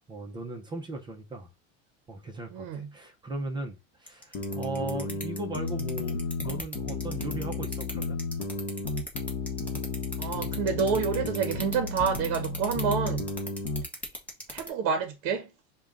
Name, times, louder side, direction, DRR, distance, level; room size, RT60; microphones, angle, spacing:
voice 1, 0.1-1.5 2.1-8.2, right 2 dB, 15° right, 0.4 m, -37 dB
voice 2, 2.5-2.9 10.2-13.3 14.5-15.5, right 6 dB, 55° right, 0.7 m, -28 dB
sound 1, 4.1-14.7, equal, 5° left, 0.9 m, -37 dB
sound 2, 4.3-13.8, left 3 dB, 40° left, 0.9 m, -33 dB
6.3 x 2.2 x 3.6 m
cardioid pair, 160°, 31 cm